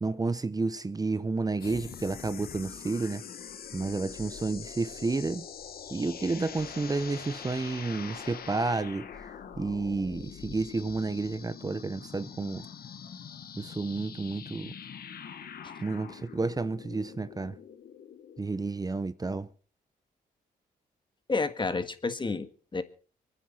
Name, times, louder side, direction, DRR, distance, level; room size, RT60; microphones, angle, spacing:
voice 1, 0.0-3.2 3.7-5.5 5.9-9.1 9.6-12.7 13.6-14.8 15.8-17.6 18.4-19.5, right 3 dB, 25° right, 0.8 m, -31 dB
sound 1, 1.6-18.4, left 7 dB, 70° left, 1.5 m, -44 dB
voice 2, 21.3-22.8, left 4 dB, 30° left, 1.7 m, -30 dB
24.5 x 9.7 x 4.3 m
cardioid pair, 70°, 16 cm